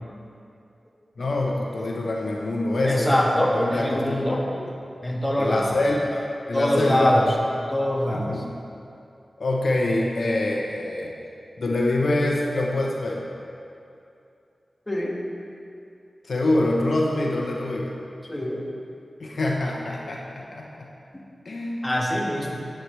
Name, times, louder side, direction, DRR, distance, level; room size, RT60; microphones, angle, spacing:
voice 1, 1.2-3.2 3.5-4.7 5.4-7.6 8.1-8.4 9.4-11.1 11.6-13.2 16.2-17.9 19.2-20.6 21.4-21.9, left 2 dB, 75° left, -1 dB, 0.9 m, -25 dB
voice 2, 2.8-4.4 5.0-5.8 6.5-7.3 7.7-8.4 14.9-15.2 18.3-18.6 21.1-21.2 21.8-22.6, left 1 dB, 20° left, -2 dB, 1.5 m, -23 dB
10.0 x 9.4 x 3.3 m, 2.6 s
cardioid pair, 50°, 0 cm